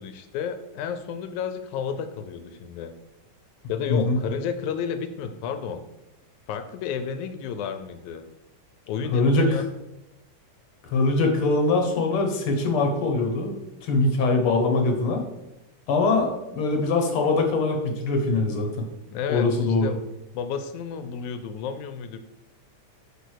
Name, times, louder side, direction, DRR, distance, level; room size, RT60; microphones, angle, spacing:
voice 1, 0.0-2.9 3.7-5.9 6.5-8.2 8.9-9.7 19.1-20.0 20.3-22.2, left 7 dB, 80° left, 9 dB, 1.9 m, -31 dB
voice 2, 9.1-9.6 10.9-13.6 13.8-15.2 15.9-18.9 19.3-19.9, left 3 dB, 60° left, 4 dB, 1.6 m, -22 dB
6.2 x 5.2 x 6.3 m, 0.93 s
omnidirectional pair, 3.6 m